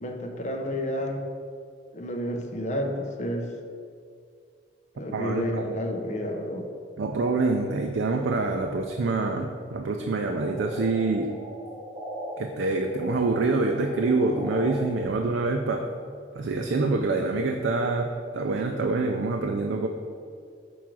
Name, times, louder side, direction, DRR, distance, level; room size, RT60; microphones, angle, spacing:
voice 1, 0.0-1.2 1.9-3.5 5.0-6.6, equal, 40° left, 2 dB, 0.7 m, -30 dB
voice 2, 5.1-5.6 7.0-11.3 12.4-15.9 16.3-19.9, right 3 dB, 85° right, 4 dB, 0.4 m, -26 dB
sound 1, 10.2-12.3 12.7-14.7, right 1 dB, 20° right, 1.0 m, -39 dB
6.1 x 3.6 x 6.0 m, 2.2 s
head